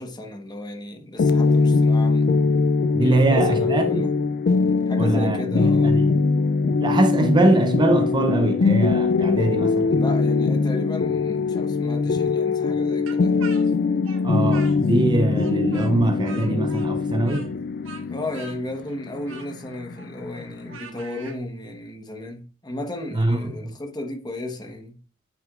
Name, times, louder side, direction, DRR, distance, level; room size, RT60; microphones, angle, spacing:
voice 1, 0.0-2.3 3.0-4.1 4.9-6.0 9.9-13.4 18.1-25.0, left 1 dB, 20° left, 1.1 m, -34 dB
sound 1, 1.2-20.8, left 4 dB, 50° left, 0.4 m, -22 dB
voice 2, 2.9-4.1 5.0-6.0 6.8-10.0 14.2-17.5 23.1-23.7, right 2 dB, 20° right, 0.5 m, -22 dB
Speech, 13.1-15.1 15.3-21.4, right 5 dB, 70° right, 1.4 m, -43 dB
9.2 x 5.9 x 2.4 m
head